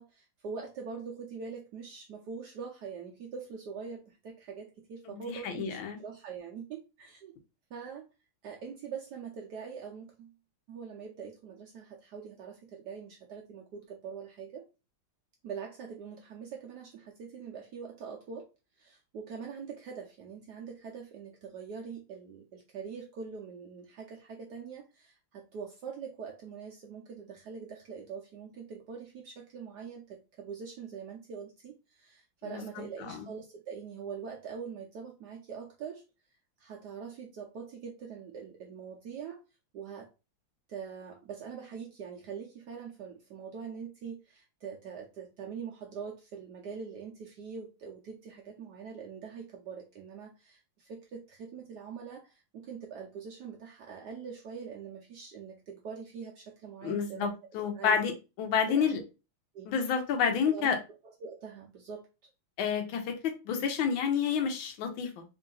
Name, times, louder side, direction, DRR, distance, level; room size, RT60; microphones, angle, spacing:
voice 1, 0.0-7.3 7.7-8.1 8.4-10.3 10.7-14.7 15.4-18.5 18.8-36.0 36.6-39.4 39.7-40.1 40.7-58.0 58.6-59.0 59.5-59.7 60.4-60.7 61.0-62.3, right 6 dB, 70° right, 1.0 m, -43 dB
voice 2, 5.1-6.0 32.5-32.6 33.1-33.3 56.8-58.1 58.4-59.0 59.7-60.8 62.6-65.2, left 7 dB, 70° left, 1.5 m, -29 dB
3.7 x 2.6 x 3.7 m
omnidirectional pair, 2.4 m